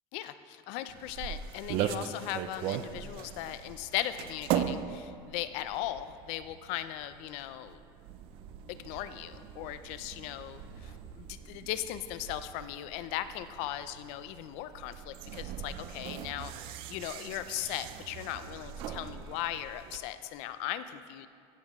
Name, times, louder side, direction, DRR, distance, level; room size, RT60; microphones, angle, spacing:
voice 1, 0.1-7.8 8.7-10.6 11.2-21.3, left 13 dB, 65° left, 12 dB, 0.5 m, -38 dB
sound 1, 0.9-20.0, right 9 dB, 50° right, 0.5 m, -40 dB
15.5 x 7.4 x 3.6 m, 2.3 s
cardioid pair, 165°, 12 cm